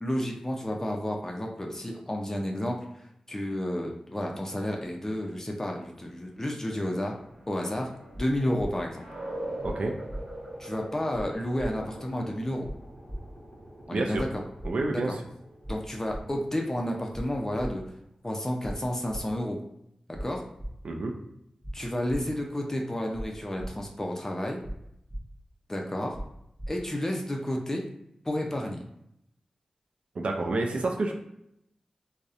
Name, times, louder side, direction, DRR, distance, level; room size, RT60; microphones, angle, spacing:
voice 1, 0.0-2.8 3.3-7.2 7.5-7.9 8.2-9.1 10.6-12.7 13.9-14.3 14.9-15.1 15.7-17.8 18.2-19.6 20.2-20.4 21.7-24.6 25.7-26.2 26.7-27.8 28.2-28.8, left 1 dB, 25° left, 1 dB, 0.4 m, -31 dB
sound 1, 6.6-17.9, right 1 dB, 55° right, 1.0 m, -44 dB
sound 2, 8.1-8.2 8.6-8.7 9.6-9.7 10.1-10.2 11.1-11.3 11.6-11.7 12.6-12.7 13.1-13.2 14.1-14.2 14.6-14.7 15.6-15.8 16.1-16.2 17.1-17.2 17.6-17.7 18.6-18.8 19.1-19.2 20.1-20.2 20.6-20.7 21.6-21.7 22.1-22.2 23.1-23.3 23.6-23.7 24.6-24.8 25.1-25.2 26.1-26.3 26.6-26.7, equal, 20° right, 0.6 m, -36 dB
voice 2, 9.6-10.0 13.9-14.2 14.6-15.2 20.8-21.1 30.2-31.1, right 2 dB, 70° right, 2 dB, 0.3 m, -28 dB
2.6 x 2.0 x 2.4 m, 0.78 s
cardioid pair, 45°, 2 cm